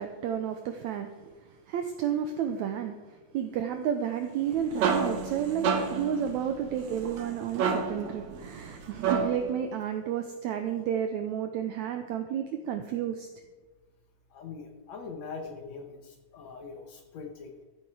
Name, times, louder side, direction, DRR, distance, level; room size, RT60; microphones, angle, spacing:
voice 1, 0.0-13.3, right 9 dB, 85° right, 6 dB, 1.6 m, -32 dB
sound 1, 4.3-9.5, right 5 dB, 65° right, 2.1 m, -31 dB
voice 2, 14.3-17.5, left 4 dB, 65° left, 3 dB, 1.9 m, -42 dB
13.5 x 7.9 x 4.7 m, 1.2 s
omnidirectional pair, 4.0 m